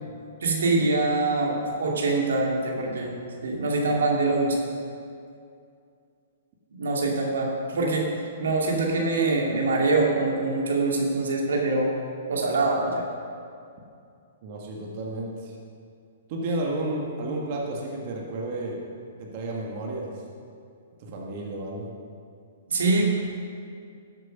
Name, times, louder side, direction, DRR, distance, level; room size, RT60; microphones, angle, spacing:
voice 1, 0.4-3.1 3.4-4.6 6.8-8.1 8.4-11.9 12.3-13.1 22.7-23.1, right 3 dB, 85° right, -1 dB, 2.5 m, -24 dB
voice 2, 14.4-15.5 16.3-18.8 19.2-20.1 21.0-21.9, right 2 dB, 45° right, -2 dB, 1.7 m, -32 dB
13.0 x 7.9 x 5.4 m, 2.4 s
hypercardioid pair, 150°, 0 cm